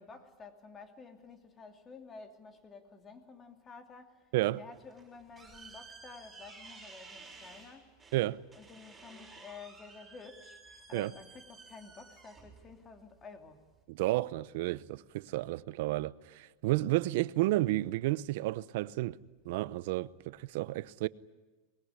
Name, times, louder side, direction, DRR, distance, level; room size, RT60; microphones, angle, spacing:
voice 1, 0.0-4.3 4.6-8.0 8.5-13.6, left 4 dB, 20° left, 2.7 m, -51 dB
sound 1, 4.7-13.8, right 4 dB, 10° right, 6.2 m, -54 dB
voice 2, 13.9-19.2 19.4-21.1, right 17 dB, 65° right, 0.7 m, -31 dB
24.5 x 21.5 x 9.9 m
supercardioid pair, 150°, 0 cm